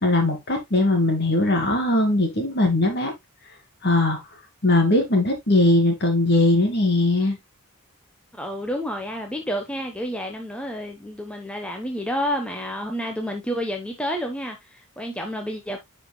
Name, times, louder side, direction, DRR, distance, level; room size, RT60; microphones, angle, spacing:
voice 1, 0.0-3.1 3.8-4.2 4.6-7.4, left 2 dB, 50° left, 2.4 m, -20 dB
voice 2, 8.3-15.8, equal, 5° left, 0.9 m, -30 dB
10.5 x 5.1 x 2.2 m
head